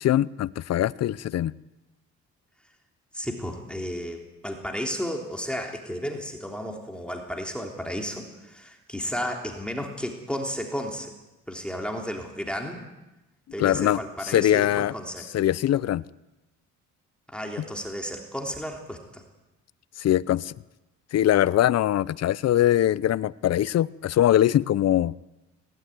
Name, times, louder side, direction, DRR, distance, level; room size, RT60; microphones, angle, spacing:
voice 1, 0.0-1.5 13.6-14.9 15.3-16.0 20.0-20.5 21.1-25.1, left 12 dB, 55° left, 19 dB, 0.6 m, -22 dB
voice 2, 3.1-11.1 11.5-12.8 13.5-15.3 17.3-19.2, equal, 5° left, 2 dB, 3.3 m, -33 dB
18.5 x 17.5 x 9.4 m, 1.0 s
cardioid pair, 90°, 30 cm